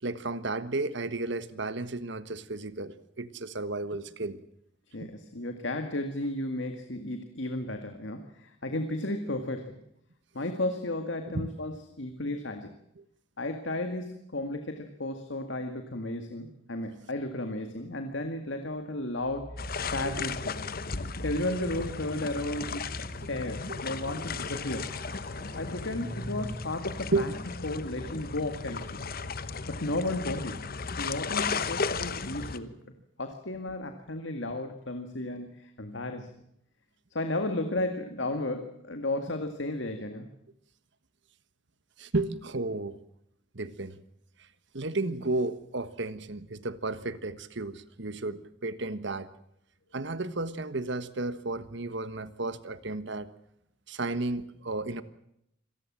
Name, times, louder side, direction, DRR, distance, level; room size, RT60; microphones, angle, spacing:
voice 1, 0.0-4.4 11.3-11.5 13.0-13.1 20.0-20.3 21.6-21.7 23.7-23.8 27.1-27.3 42.0-43.0 43.5-44.0 44.4-44.5 44.7-49.3 49.9-53.3 53.9-55.0, right 2 dB, 65° right, 14 dB, 1.4 m, -33 dB
voice 2, 4.9-9.8 10.3-12.7 13.4-19.6 19.9-20.7 21.2-24.9 25.6-27.3 27.6-29.0 29.7-32.7 33.2-36.3 37.1-40.3, left 1 dB, 65° left, 7 dB, 2.0 m, -34 dB
sound 1, 19.2-20.1 21.0-27.0, equal, 20° right, 3.7 m, -44 dB
sound 2, 19.6-32.6, left 4 dB, 50° left, 1.1 m, -35 dB
26.0 x 19.0 x 7.5 m, 0.76 s
head